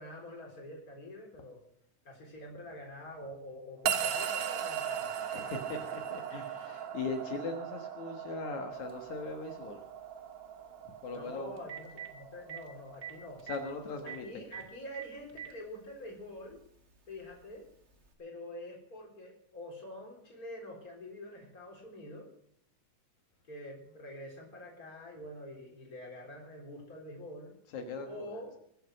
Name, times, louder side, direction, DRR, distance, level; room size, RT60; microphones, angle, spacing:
voice 1, 0.0-1.6 2.0-5.1 11.1-13.4 14.0-16.6 17.1-17.7 18.2-22.3 23.5-27.5 28.1-28.5, left 1 dB, 30° left, 1 dB, 4.3 m, -46 dB
sound 1, 3.9-14.2, right 8 dB, 75° right, 2.7 m, -38 dB
voice 2, 5.3-9.8 11.0-11.6 13.4-14.5 27.7-28.5, left 3 dB, 80° left, 4 dB, 2.9 m, -40 dB
Telephone, 8.9-9.0 11.1-11.2 11.6-12.1 12.5-12.6 13.0-13.1 13.4-13.6 14.1-14.2 14.5-14.6 14.9-15.5 16.5-16.6 18.1-18.2, right 9 dB, 30° right, 1.4 m, -42 dB
22.0 x 9.1 x 6.4 m, 0.69 s
omnidirectional pair, 3.3 m